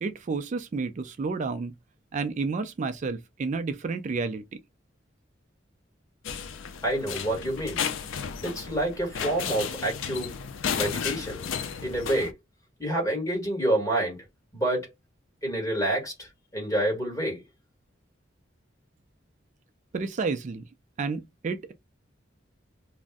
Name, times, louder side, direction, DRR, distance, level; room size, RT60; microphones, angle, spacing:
voice 1, 0.0-1.7 2.1-4.4 19.9-20.6 21.0-21.7, right 4 dB, 40° right, 0.3 m, -30 dB
sound 1, 6.2-12.3, left 7 dB, 85° left, 0.4 m, -33 dB
voice 2, 6.8-7.8 8.4-10.3 10.7-11.4 11.8-12.3 12.8-14.2 14.5-14.9 15.4-17.4, right 1 dB, 15° left, 1.4 m, -28 dB
2.5 x 2.0 x 3.5 m
head